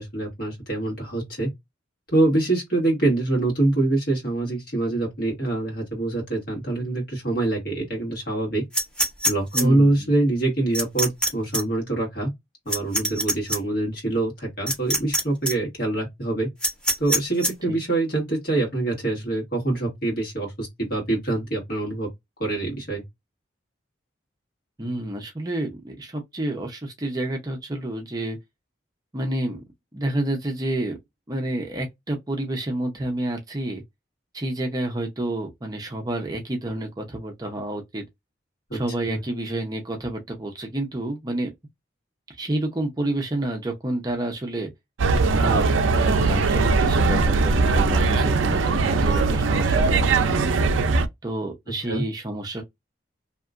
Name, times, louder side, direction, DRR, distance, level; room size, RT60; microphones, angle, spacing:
voice 1, 0.0-1.5 2.1-8.6 9.2-12.3 12.6-16.5 17.0-22.1 22.4-23.0 38.7-39.2 51.9-52.0, right 2 dB, 50° left, 1.6 m, -25 dB
sound 1, 8.7-9.6 10.7-11.3 11.5-11.6 12.7-13.6 14.7-15.2 15.5-15.6 16.6-17.5, right 1 dB, 5° left, 0.9 m, -22 dB
voice 2, 9.5-10.1 17.7-17.8 24.8-28.4 29.1-29.6 29.9-31.0 31.3-33.8 34.3-38.0 38.7-41.5 42.3-44.7 45.4-50.5 51.2-52.6, right 1 dB, 20° right, 0.5 m, -29 dB
sound 2, 45.0-51.1, right 3 dB, 90° right, 0.4 m, -20 dB
2.8 x 2.4 x 2.4 m
head